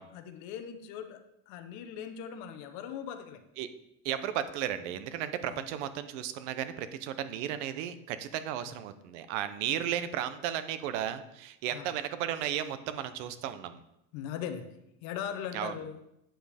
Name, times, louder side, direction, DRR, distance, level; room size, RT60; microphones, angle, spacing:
voice 1, 0.1-3.4 5.5-5.6 8.6-8.7 11.7-11.9 14.1-16.0, left 8 dB, 55° left, 8 dB, 0.9 m, -40 dB
voice 2, 4.0-13.8 15.5-15.7, right 10 dB, 85° right, 11 dB, 0.9 m, -34 dB
8.8 x 7.5 x 3.5 m, 0.83 s
cardioid pair, 175°, 35 cm